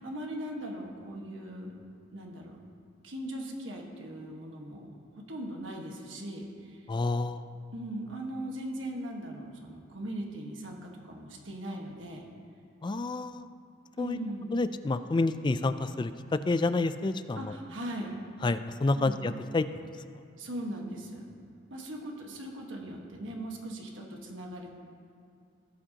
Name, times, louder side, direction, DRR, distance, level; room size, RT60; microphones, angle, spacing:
voice 1, 0.0-1.7 2.1-2.6 3.0-4.9 5.2-6.8 7.7-12.3 14.0-14.5 17.3-18.2 18.9-19.2 20.4-21.3 21.7-24.7, right 1 dB, 75° right, 0 dB, 1.5 m, -39 dB
voice 2, 6.9-7.5 12.8-13.5 14.0-14.2 14.5-17.5 18.4-19.7, left 3 dB, 25° left, 12 dB, 0.3 m, -29 dB
17.0 x 7.7 x 2.9 m, 2.6 s
head